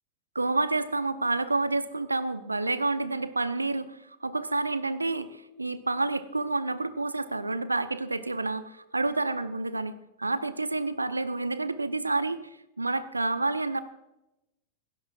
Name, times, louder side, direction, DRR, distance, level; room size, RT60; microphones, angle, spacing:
voice 1, 0.3-12.4 12.8-13.8, right 3 dB, 80° right, 13 dB, 0.7 m, -29 dB
17.0 x 17.0 x 2.4 m, 0.90 s
figure-of-eight pair, 90°, 0 cm